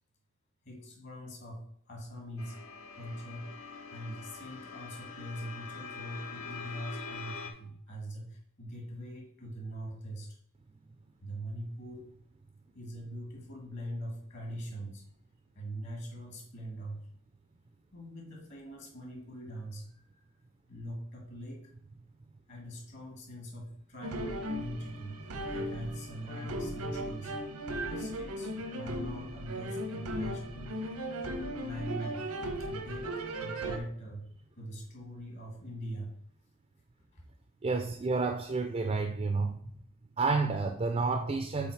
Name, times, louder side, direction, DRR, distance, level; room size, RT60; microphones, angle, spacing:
voice 1, 0.7-2.6 2.9-10.4 11.2-12.1 12.7-15.0 15.6-17.0 17.9-19.9 20.7-21.7 22.5-30.8 31.6-32.3 32.6-34.3 34.6-36.1 37.1-37.2, equal, 55° left, -1 dB, 1.6 m, -42 dB
sound 1, 2.4-7.5, left 5 dB, 70° left, 0.9 m, -44 dB
sound 2, 24.0-33.8, right 1 dB, 85° right, 0.9 m, -37 dB
voice 2, 37.6-39.6 40.2-41.7, right 4 dB, 30° right, 7 dB, 0.4 m, -30 dB
5.6 x 4.0 x 4.6 m, 0.63 s
head